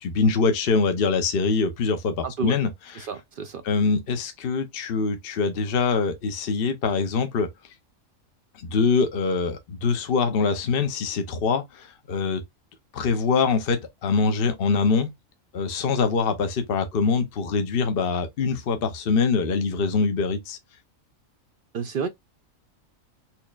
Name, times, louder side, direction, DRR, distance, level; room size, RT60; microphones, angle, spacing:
voice 1, 0.0-2.7 3.6-7.5 8.6-12.4 12.9-15.1 15.5-20.6, left 4 dB, 55° left, 0.8 m, -24 dB
voice 2, 2.2-2.6 2.9-3.6 21.7-22.1, right 6 dB, 65° right, 0.5 m, -30 dB
4.3 x 2.9 x 2.3 m
omnidirectional pair, 1.4 m